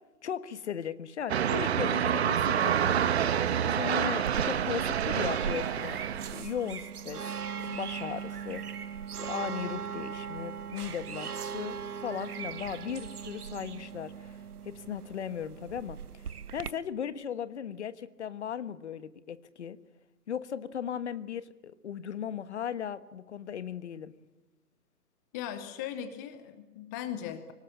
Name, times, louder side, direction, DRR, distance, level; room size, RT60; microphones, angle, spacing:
voice 1, 0.2-3.1 3.6-6.0 6.3-7.4 7.6-14.4 14.6-19.8 20.3-24.1, left 8 dB, 45° left, 1.4 m, -37 dB
sound 1, 1.3-6.4, right 9 dB, 40° right, 1.3 m, -28 dB
sound 2, 4.2-16.7, right 7 dB, 70° right, 1.1 m, -39 dB
voice 2, 25.3-27.5, left 10 dB, 10° left, 0.7 m, -38 dB
25.5 x 19.0 x 10.0 m
figure-of-eight pair, 140°, 47 cm